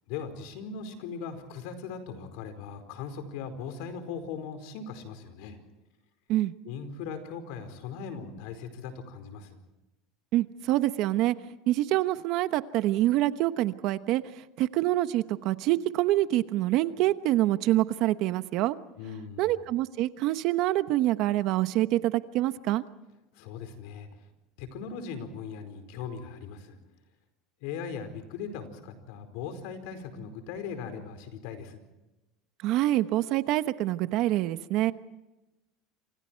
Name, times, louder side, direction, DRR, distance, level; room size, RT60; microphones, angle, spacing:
voice 1, 0.1-5.6 6.6-9.6 19.0-19.5 23.3-24.1 24.6-26.8 27.6-31.8, left 6 dB, 70° left, 8 dB, 4.7 m, -39 dB
voice 2, 10.3-11.4 11.7-14.2 14.6-18.8 19.4-22.8 32.6-34.9, right 15 dB, 55° right, 12 dB, 1.0 m, -26 dB
29.0 x 26.5 x 4.6 m, 1.0 s
supercardioid pair, 145°, 0 cm